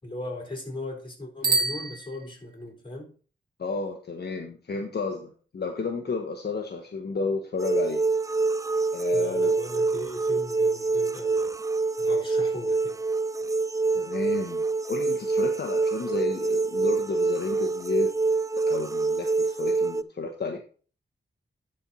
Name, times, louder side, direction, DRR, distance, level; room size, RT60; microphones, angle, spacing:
voice 1, 0.0-3.1 9.1-11.5 12.0-13.0, left 1 dB, 25° left, 4.2 m, -38 dB
Bicycle bell, 1.4-2.7, right 3 dB, 50° right, 1.8 m, -28 dB
voice 2, 3.6-8.0 8.9-9.5 13.9-18.1 18.7-20.6, left 4 dB, 55° left, 1.2 m, -32 dB
sound 1, 7.6-20.0, right 3 dB, 15° right, 0.4 m, -26 dB
11.0 x 4.5 x 4.1 m
cardioid pair, 55°, 20 cm